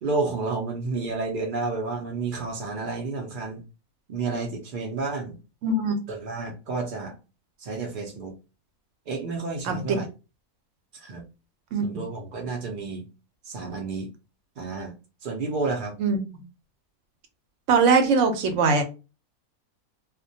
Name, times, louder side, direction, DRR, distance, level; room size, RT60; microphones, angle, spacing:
voice 1, 0.0-3.6 4.1-5.4 6.1-7.1 7.6-8.3 9.1-10.1 10.9-11.2 11.8-13.0 13.4-14.1 14.6-14.9 15.2-16.0, right 3 dB, 85° right, 0.4 m, -30 dB
voice 2, 5.6-6.0 9.6-10.0 11.7-12.0 16.0-16.2 17.7-18.8, right 4 dB, 65° right, 0.8 m, -21 dB
2.3 x 2.1 x 2.6 m
omnidirectional pair, 1.5 m